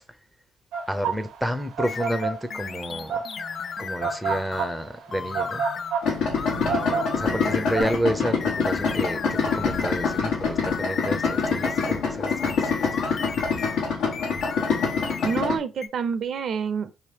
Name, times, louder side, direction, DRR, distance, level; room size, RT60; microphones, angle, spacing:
sound 1, 0.7-7.8, right 5 dB, 85° right, 0.9 m, -29 dB
voice 1, 0.9-3.2 3.8-5.6 7.2-9.2 9.5-12.9, equal, ahead, 0.5 m, -30 dB
sound 2, 1.8-4.7 5.1-6.0 6.4-8.0 8.4-10.3 10.7-13.8 14.1-15.5 15.8-15.9, left 6 dB, 50° left, 0.3 m, -34 dB
Idling, 6.0-15.6, left 5 dB, 85° left, 1.2 m, -26 dB
voice 2, 6.5-7.2 15.2-17.0, right 6 dB, 60° right, 0.6 m, -29 dB
2.9 x 2.8 x 3.3 m
cardioid pair, 90°, 0 cm